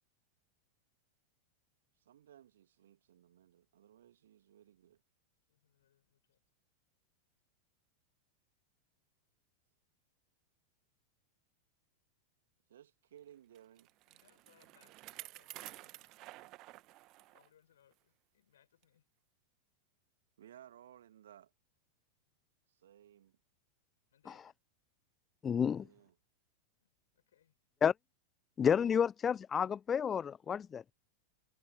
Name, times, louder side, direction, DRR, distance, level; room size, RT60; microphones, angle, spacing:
voice 1, 2.0-5.0 12.7-13.9 20.4-21.5 22.7-23.4 25.7-26.1, right 11 dB, 60° right, 2.7 m, -59 dB
voice 2, 5.5-6.4 14.1-16.5 17.2-19.0 24.1-24.6 26.8-27.6, left 10 dB, 65° left, 6.9 m, -71 dB
Bicycle, 13.5-17.5 17.9-18.0 18.8-18.9, right 19 dB, 40° right, 1.3 m, -52 dB
voice 3, 25.4-25.9 27.8-27.9 28.6-30.9, left 7 dB, 20° left, 0.4 m, -31 dB
figure-of-eight pair, 90°, 0 cm